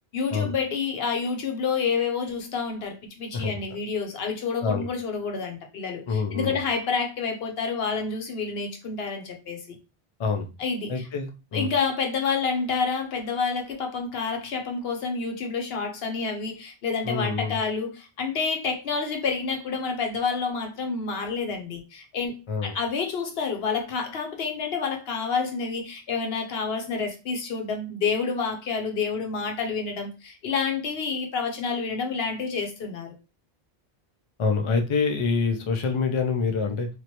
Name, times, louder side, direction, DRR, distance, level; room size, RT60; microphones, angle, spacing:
voice 1, 0.1-9.8 10.6-10.9 11.5-33.1, left 5 dB, 70° left, 1.0 m, -28 dB
voice 2, 6.1-6.6 10.2-10.5 10.9-11.7 17.0-17.5 22.5-22.8 34.4-36.9, left 5 dB, 45° left, 0.4 m, -26 dB
3.1 x 2.5 x 2.9 m
omnidirectional pair, 1.1 m